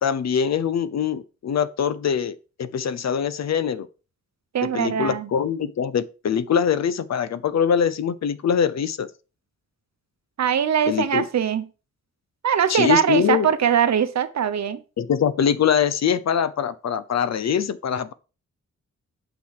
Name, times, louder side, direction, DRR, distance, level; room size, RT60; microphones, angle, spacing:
voice 1, 0.0-3.9 4.6-9.1 10.9-11.2 12.7-13.5 15.0-18.1, left 8 dB, 65° left, 0.7 m, -23 dB
voice 2, 4.5-5.3 10.4-11.6 12.4-14.8, right 8 dB, 65° right, 1.0 m, -21 dB
8.6 x 6.1 x 4.9 m
wide cardioid pair, 170°, 29 cm